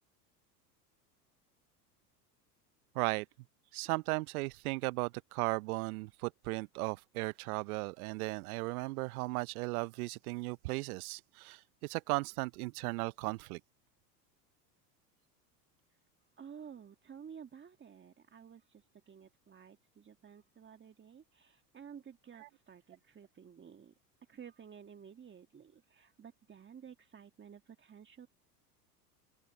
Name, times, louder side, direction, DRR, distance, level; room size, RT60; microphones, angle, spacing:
voice 1, 2.9-3.3 3.7-13.6 22.4-22.5, right 23 dB, 60° right, 0.7 m, -36 dB
voice 2, 16.4-23.9 24.3-28.3, right 7 dB, 25° right, 2.0 m, -53 dB
open air
hypercardioid pair, 85°, 49 cm